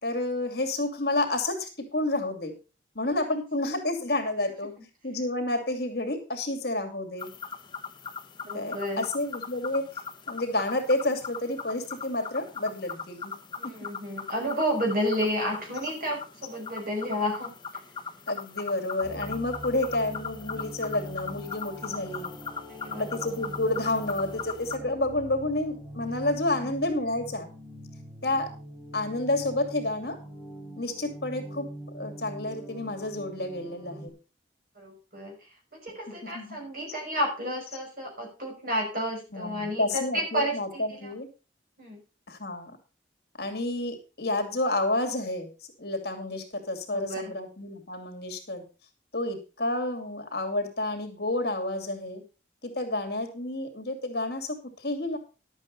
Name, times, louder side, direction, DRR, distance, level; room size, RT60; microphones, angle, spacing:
voice 1, 0.0-2.5 2.9-4.7 5.0-7.3 8.5-10.0 10.3-13.3 18.3-22.3 22.9-27.5 28.2-28.5 28.9-30.2 30.8-34.1 36.2-36.6 39.3-41.3 42.3-42.8 43.4-45.5 45.8-48.6 49.1-52.2 52.6-55.2, left 2 dB, 60° left, 6 dB, 2.6 m, -30 dB
sound 1, 7.2-24.7, left 6 dB, 25° left, 1.1 m, -39 dB
voice 2, 8.5-9.1 13.6-17.5 22.7-23.0 34.8-35.4 35.7-41.1 41.8-42.0 46.9-47.3, equal, 50° right, 1 dB, 5.7 m, -31 dB
sound 2, 19.0-34.1, right 1 dB, ahead, 4.1 m, -43 dB
11.5 x 8.2 x 5.2 m, 0.33 s
head